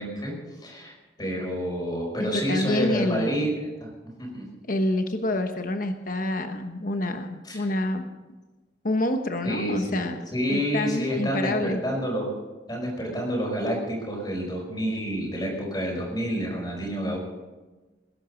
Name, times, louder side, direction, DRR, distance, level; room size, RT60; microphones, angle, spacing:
voice 1, 0.0-3.5 3.8-3.9 4.2-4.5 7.4-7.7 9.4-10.0 10.3-12.3 12.7-17.2, equal, 25° left, -1 dB, 5.3 m, -29 dB
voice 2, 2.2-3.5 4.7-8.1 8.8-10.2 10.5-11.8, left 1 dB, 50° left, 7 dB, 1.1 m, -27 dB
20.5 x 11.0 x 5.2 m, 1.2 s
head